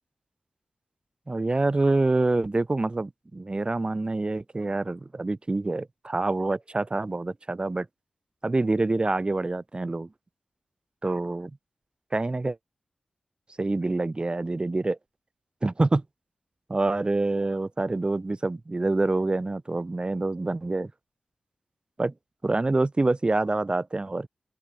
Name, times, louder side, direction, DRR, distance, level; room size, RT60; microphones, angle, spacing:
voice 1, 1.3-7.9 8.4-10.1 11.0-11.5 12.1-12.6 13.6-15.0 15.6-16.0 16.7-20.9 22.0-22.1 22.4-24.3, right 2 dB, 30° right, 1.5 m, -26 dB
open air
cardioid pair, 50°, 3 cm